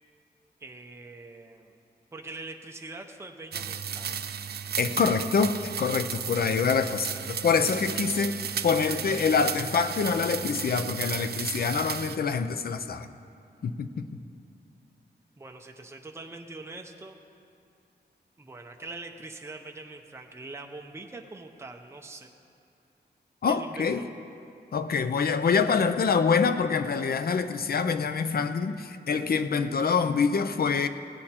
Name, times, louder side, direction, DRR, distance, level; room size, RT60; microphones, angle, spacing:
voice 1, 0.6-1.8 2.1-4.3 15.4-17.2 18.4-22.3 23.5-24.1, right 2 dB, 15° right, 3 dB, 0.6 m, -43 dB
sound 1, 3.5-12.2, right 7 dB, 65° right, 0.4 m, -34 dB
voice 2, 4.8-13.1 13.6-14.1 23.4-24.0 24.7-30.9, left 5 dB, 60° left, 10 dB, 0.5 m, -26 dB
17.5 x 8.7 x 4.3 m, 2.6 s
wide cardioid pair, 130°, 18 cm